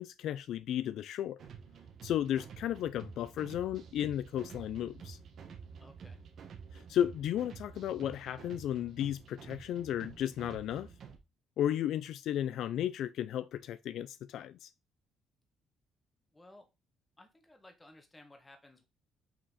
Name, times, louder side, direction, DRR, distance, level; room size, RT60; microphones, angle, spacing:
voice 1, 0.0-1.4 2.0-5.2 6.7-10.9 11.6-14.7, left 11 dB, 65° left, 0.4 m, -34 dB
sound 1, 1.4-11.2, right 6 dB, 50° right, 1.3 m, -50 dB
voice 2, 5.8-6.2 16.3-16.7 17.2-18.8, left 1 dB, 10° left, 1.4 m, -57 dB
5.8 x 5.6 x 4.1 m
cardioid pair, 155°, 0 cm